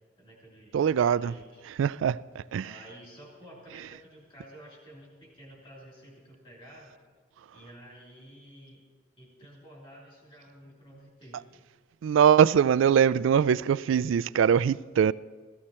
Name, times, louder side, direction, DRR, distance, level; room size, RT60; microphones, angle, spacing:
voice 1, 0.2-1.6 2.6-7.0 7.5-8.8 9.2-11.6, equal, 30° left, 3.3 m, -51 dB
voice 2, 0.7-1.3 1.7-2.8 12.0-15.1, right 8 dB, 80° right, 0.3 m, -22 dB
15.5 x 14.0 x 4.3 m
head